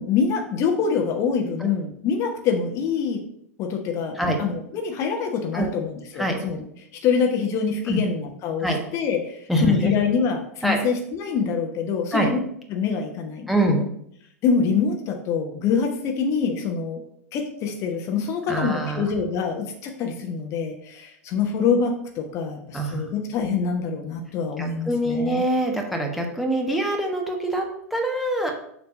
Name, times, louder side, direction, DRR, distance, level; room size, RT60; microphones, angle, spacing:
voice 1, 0.0-3.2 3.6-6.6 6.9-8.7 8.9-12.4 12.7-13.8 14.4-17.0 17.3-25.4, left 6 dB, 35° left, 3 dB, 1.1 m, -25 dB
voice 2, 9.5-9.9 10.6-10.8 12.1-12.3 13.5-13.8 18.5-19.1 22.7-23.1 24.6-28.5, right 1 dB, ahead, 1 dB, 1.2 m, -24 dB
7.1 x 3.4 x 6.3 m, 0.69 s
figure-of-eight pair, 90°, 8 cm